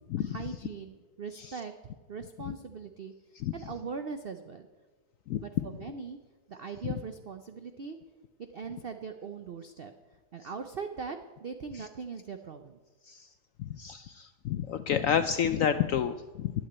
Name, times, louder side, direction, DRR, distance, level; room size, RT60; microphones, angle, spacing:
voice 1, 0.2-1.7 2.1-3.1 3.5-4.7 5.4-6.2 6.5-8.0 8.4-9.9 10.3-12.8, right 5 dB, 85° right, 8 dB, 0.5 m, -40 dB
voice 2, 13.6-16.5, left 8 dB, 75° left, 10 dB, 0.7 m, -30 dB
11.5 x 8.9 x 8.6 m, 1.3 s
omnidirectional pair, 1.9 m